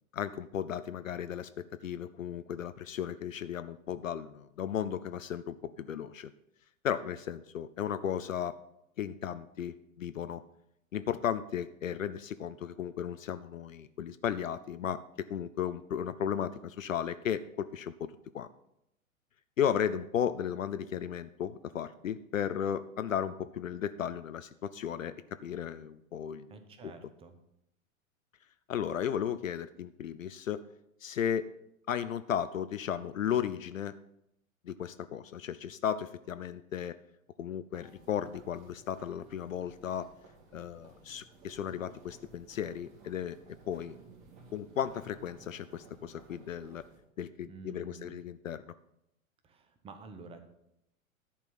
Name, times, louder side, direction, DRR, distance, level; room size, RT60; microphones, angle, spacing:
voice 1, 0.1-6.3 6.8-8.6 9.0-10.4 10.9-18.5 19.6-26.5 26.8-26.9 28.7-30.7 31.0-31.5 31.9-34.0 34.6-37.0 37.4-40.1 40.5-43.4 43.7-44.0 44.5-46.8 47.2-48.7, left 9 dB, 70° left, 12 dB, 0.5 m, -35 dB
voice 2, 26.5-27.4 47.5-48.2 49.4-50.4, right 3 dB, 15° right, 8 dB, 0.9 m, -49 dB
sound 1, 37.7-47.0, right 3 dB, 35° right, 2.2 m, -56 dB
11.0 x 4.5 x 7.3 m, 0.80 s
figure-of-eight pair, 100°, 41 cm